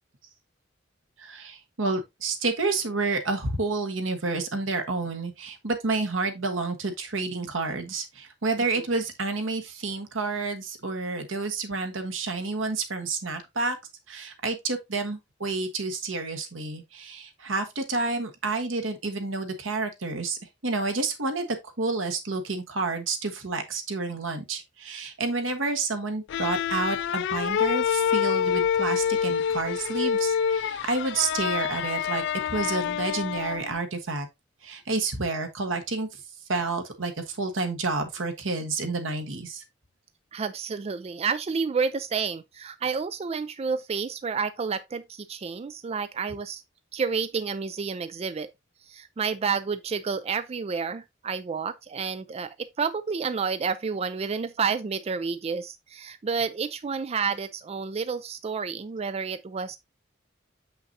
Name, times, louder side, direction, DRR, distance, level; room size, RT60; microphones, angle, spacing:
voice 1, 1.2-13.8 14.1-34.3 34.6-36.2 36.5-39.6, right 3 dB, 90° right, 1.4 m, -29 dB
sound 1, 26.3-33.8, left 8 dB, 65° left, 0.3 m, -27 dB
voice 2, 40.3-46.6 46.9-48.5 48.9-59.8, right 5 dB, 30° right, 0.4 m, -30 dB
6.7 x 5.8 x 2.7 m
head